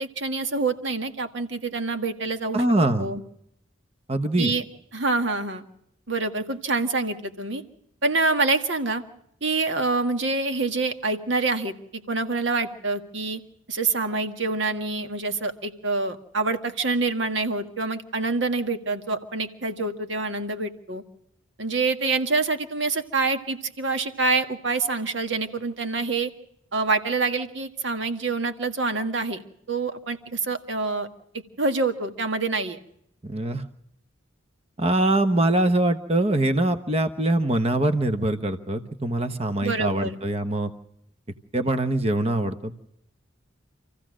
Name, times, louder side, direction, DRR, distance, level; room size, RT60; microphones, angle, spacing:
voice 1, 0.0-2.6 3.0-3.2 4.4-4.6 4.9-5.6 6.1-7.6 8.0-9.0 9.4-13.4 13.7-21.0 21.6-26.3 26.7-29.4 29.7-31.1 31.6-32.8 39.6-40.2, right 3 dB, 65° right, 7 dB, 1.8 m, -26 dB
voice 2, 2.5-3.1 4.1-4.5 33.2-33.6 34.8-40.7 41.5-42.8, right 1 dB, 30° right, 9 dB, 1.1 m, -23 dB
27.5 x 15.5 x 6.3 m, 0.75 s
head